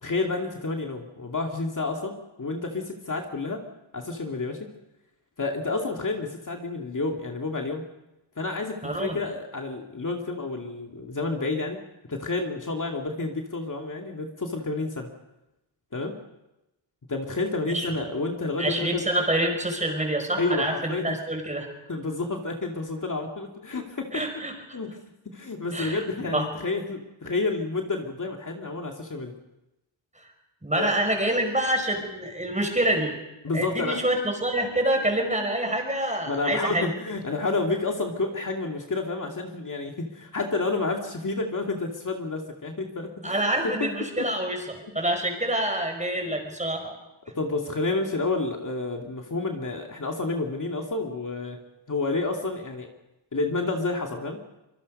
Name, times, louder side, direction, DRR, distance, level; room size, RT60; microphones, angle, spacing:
voice 1, 0.0-3.6 3.9-4.7 5.4-7.8 8.4-11.8 12.1-15.1 15.9-16.1 17.1-19.0 20.4-21.2 21.9-24.1 24.7-24.9 25.3-29.3 30.8-30.9 33.4-34.0 36.3-43.9 44.2-44.3 46.3-46.4 47.4-51.6 51.9-52.9 53.3-54.4, left 3 dB, 40° left, 1 dB, 2.4 m, -30 dB
voice 2, 8.8-9.2 17.7-18.0 18.6-21.7 24.1-24.8 25.7-26.0 26.3-26.5 30.2-30.3 30.6-33.2 33.5-36.9 43.2-47.0, right 1 dB, 15° right, 4 dB, 5.4 m, -27 dB
25.5 x 24.0 x 5.4 m, 0.95 s
wide cardioid pair, 120°, 48 cm